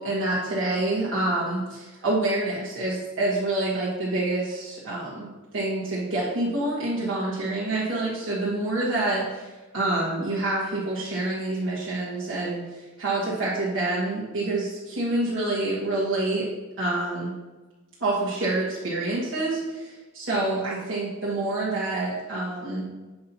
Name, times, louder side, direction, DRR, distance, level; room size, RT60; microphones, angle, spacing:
voice 1, 0.0-16.5 16.8-17.3 18.0-22.9, right 2 dB, 90° right, -7 dB, 1.4 m, -27 dB
7.6 x 5.4 x 2.8 m, 1.2 s
head